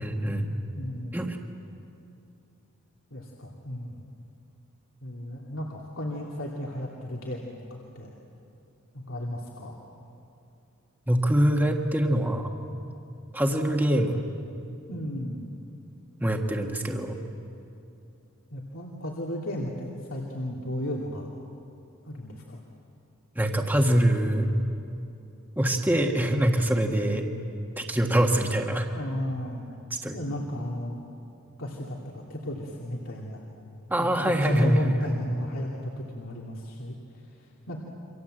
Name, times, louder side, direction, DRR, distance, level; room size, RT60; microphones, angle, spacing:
voice 1, 0.0-0.6 1.1-1.4 11.1-12.5 13.3-14.2 16.2-17.2 23.3-24.5 25.6-27.3 27.8-28.9 29.9-30.2 33.9-35.2, right 1 dB, 10° right, 2 dB, 1.5 m, -24 dB
voice 2, 0.7-1.3 3.1-4.1 5.0-8.1 8.9-9.8 14.9-15.5 18.5-21.3 22.0-22.6 28.9-29.7 30.1-31.0 31.6-33.5 34.0-37.0 37.4-37.8, left 1 dB, 75° left, -2 dB, 2.5 m, -34 dB
28.5 x 25.0 x 7.8 m, 2.7 s
head